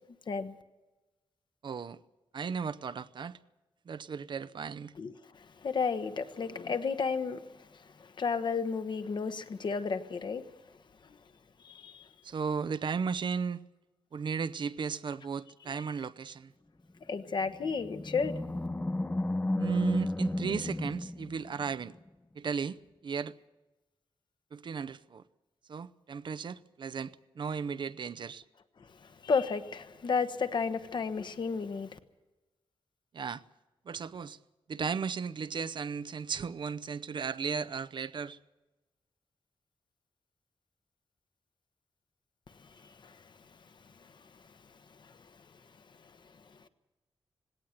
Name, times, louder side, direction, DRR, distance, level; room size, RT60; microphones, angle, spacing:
voice 1, 1.6-2.0 2.3-3.4 3.9-4.9 12.2-13.6 14.1-16.5 19.6-22.0 22.4-23.3 24.5-25.2 25.7-28.4 33.1-33.4 33.9-34.4 34.7-38.4, right 5 dB, 55° right, 0.7 m, -35 dB
voice 2, 5.0-7.4 8.0-10.5 11.6-12.1 17.1-18.4 29.2-32.0 43.0-43.2, left 5 dB, 55° left, 1.2 m, -32 dB
Animal, 17.3-21.9, left 1 dB, 15° left, 0.7 m, -33 dB
19.0 x 17.5 x 9.2 m
wide cardioid pair, 135°, 9 cm